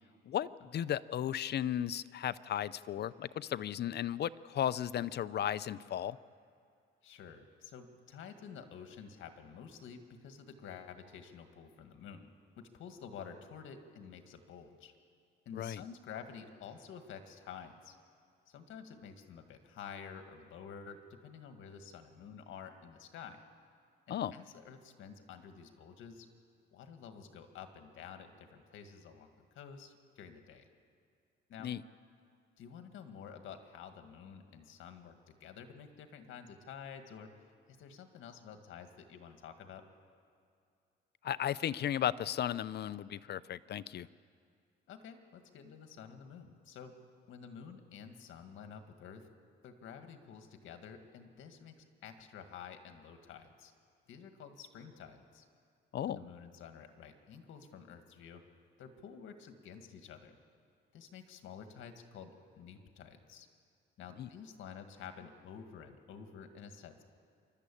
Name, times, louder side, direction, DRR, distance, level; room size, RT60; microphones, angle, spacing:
voice 1, 0.3-6.2 15.6-15.8 24.1-24.3 31.6-31.8 41.2-44.1 55.9-56.2 64.2-64.3, left 10 dB, 55° left, 17 dB, 0.6 m, -35 dB
voice 2, 7.0-14.9 15.5-17.9 18.5-21.0 21.2-23.4 24.1-26.3 26.7-30.7 31.5-31.7 32.6-37.3 37.8-39.8 44.9-46.9 47.3-49.3 49.6-53.7 54.1-55.5 56.0-58.4 58.8-60.4 60.9-63.5 64.0-67.0, left 7 dB, 80° left, 7 dB, 1.8 m, -50 dB
28.0 x 12.5 x 8.5 m, 2.3 s
cardioid pair, 90°, 20 cm